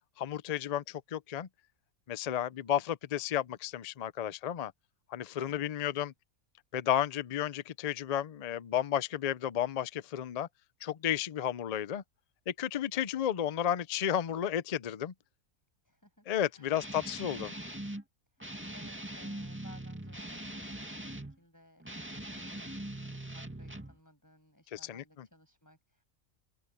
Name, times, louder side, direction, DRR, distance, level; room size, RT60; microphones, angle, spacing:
voice 1, 0.2-1.5 2.1-4.7 5.1-6.1 6.7-10.5 10.8-12.0 12.5-15.1 16.3-17.5 24.7-25.3, left 10 dB, 70° left, 0.3 m, -32 dB
voice 2, 15.8-16.8 18.3-26.0, left 1 dB, 10° left, 6.9 m, -60 dB
Guitar, 16.7-18.0 18.4-21.4 21.8-24.0, right 1 dB, 10° right, 2.1 m, -42 dB
open air
omnidirectional pair, 1.5 m